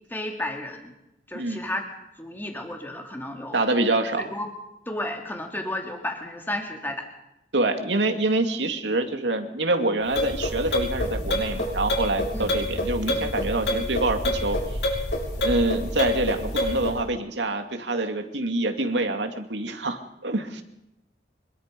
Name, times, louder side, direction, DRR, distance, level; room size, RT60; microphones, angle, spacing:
voice 1, 0.1-0.9 1.3-1.9 2.2-3.6 4.2-4.5 4.9-7.0 12.3-12.6, left 1 dB, 10° left, 2 dB, 2.8 m, -32 dB
voice 2, 3.5-4.2 7.5-14.6 15.4-20.6, right 2 dB, 85° right, 5 dB, 2.5 m, -26 dB
sound 1, 10.1-17.0, left 1 dB, 80° left, 6.3 m, -27 dB
25.5 x 22.0 x 5.4 m, 0.88 s
head